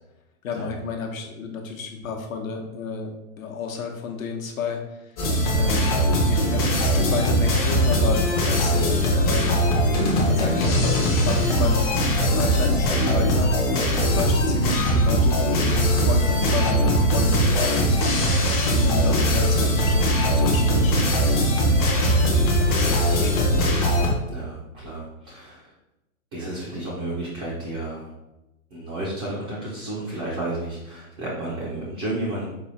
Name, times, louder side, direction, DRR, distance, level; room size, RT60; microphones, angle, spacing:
voice 1, 0.4-4.8 5.5-5.9 6.3-9.6 10.3-13.5 14.0-18.0 18.5-21.1 22.0-23.7, left 5 dB, 70° left, 2 dB, 1.0 m, -32 dB
sound 1, 5.2-24.1, equal, 25° left, 0.7 m, -20 dB
voice 2, 24.3-25.7 26.3-28.1 28.7-32.5, right 1 dB, 20° right, -7 dB, 0.5 m, -32 dB
4.8 x 2.3 x 4.1 m, 0.96 s
hypercardioid pair, 155°, 43 cm